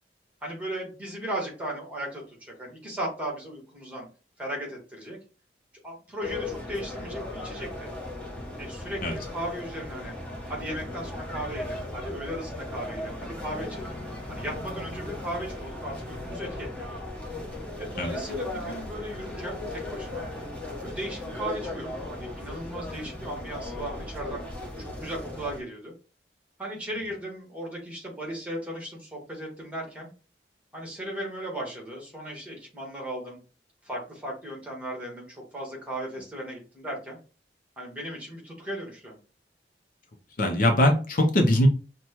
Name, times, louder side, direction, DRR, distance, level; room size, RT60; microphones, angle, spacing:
voice 1, 0.4-4.1 4.4-5.2 5.8-7.9 8.6-10.1 10.5-13.9 14.3-17.0 17.8-20.3 20.8-24.4 24.8-25.9 26.6-30.1 30.7-33.4 33.8-37.2 37.8-39.2, right 1 dB, 10° right, -1 dB, 1.5 m, -36 dB
sound 1, 6.2-25.6, left 1 dB, 10° left, 1.0 m, -37 dB
voice 2, 40.4-41.7, left 1 dB, 55° left, 3 dB, 0.7 m, -21 dB
5.8 x 2.2 x 2.9 m, 0.35 s
head